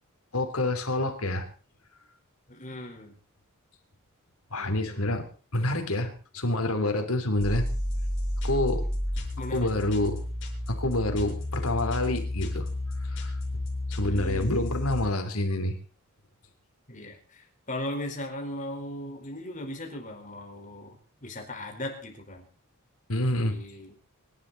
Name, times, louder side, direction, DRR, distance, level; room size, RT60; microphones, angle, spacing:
voice 1, 0.3-1.5 4.5-5.2 5.5-7.7 8.4-8.9 9.5-10.2 10.7-12.7 13.0-13.4 13.9-15.8 23.1-23.5, left 1 dB, 80° left, 6 dB, 3.5 m, -27 dB
voice 2, 2.5-3.1 4.5-5.1 9.4-9.9 14.0-14.5 16.9-20.9 21.2-22.4 23.4-23.9, left 1 dB, 35° left, 3 dB, 4.7 m, -38 dB
sound 1, 7.4-15.1, left 1 dB, 60° left, 6.5 m, -31 dB
25.5 x 12.0 x 4.2 m, 0.37 s
head